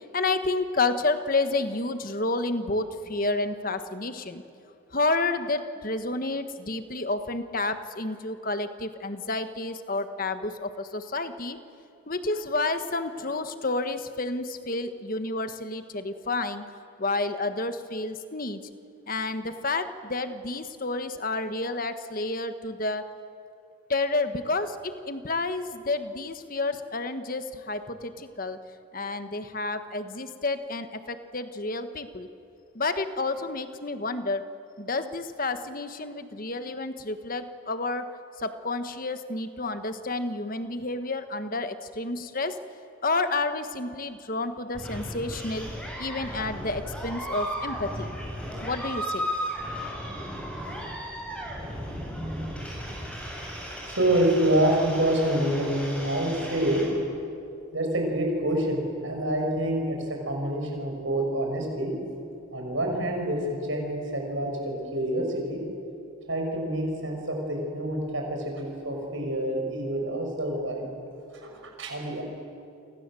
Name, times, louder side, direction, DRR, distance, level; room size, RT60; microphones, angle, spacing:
voice 1, 0.1-4.4 4.9-11.6 12.1-16.6 17.0-18.6 19.1-23.0 23.9-28.6 28.9-32.3 32.7-34.4 34.8-38.1 38.4-42.6 43.0-45.7 46.0-48.1 48.6-49.3, left 3 dB, 40° left, 9 dB, 1.4 m, -30 dB
sound 1, 44.7-56.8, equal, 5° left, 7.9 m, -35 dB
voice 2, 53.8-57.1 57.7-61.9 62.5-65.6 66.3-71.0 71.4-72.2, right 1 dB, 65° right, 2 dB, 6.8 m, -27 dB
29.5 x 25.5 x 7.7 m, 2.6 s
head